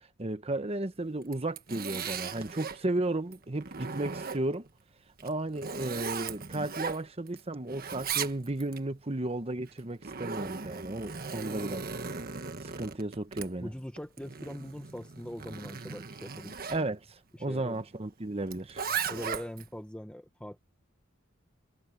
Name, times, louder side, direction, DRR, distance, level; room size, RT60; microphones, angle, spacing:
voice 1, 0.0-4.7 5.2-11.9 12.6-13.7 16.7-17.0 17.4-18.8, right 2 dB, 30° right, 1.1 m, -34 dB
Zipper (clothing), 1.2-2.8 3.3-4.7 5.2-7.4 7.7-8.8 9.7-16.8 18.5-19.7, right 6 dB, 50° right, 1.4 m, -37 dB
voice 2, 13.6-16.6 17.3-17.8 19.1-20.6, equal, 5° left, 1.3 m, -42 dB
head